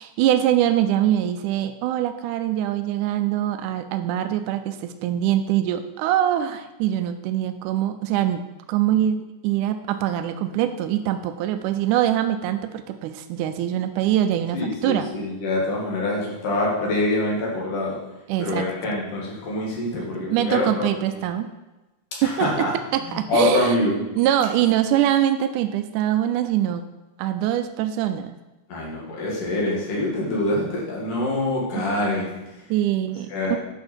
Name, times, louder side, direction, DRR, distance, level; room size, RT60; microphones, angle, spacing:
voice 1, 0.0-15.1 18.3-18.6 20.3-21.5 22.2-22.7 22.9-26.8 27.2-28.3 32.7-33.6, right 11 dB, 80° right, 8 dB, 2.0 m, -23 dB
voice 2, 14.5-18.1 18.4-21.2 22.2-22.7 23.0-24.1 28.7-32.7 33.3-33.6, left 2 dB, 80° left, -3 dB, 3.7 m, -25 dB
10.5 x 5.9 x 4.4 m, 1.0 s
omnidirectional pair, 3.6 m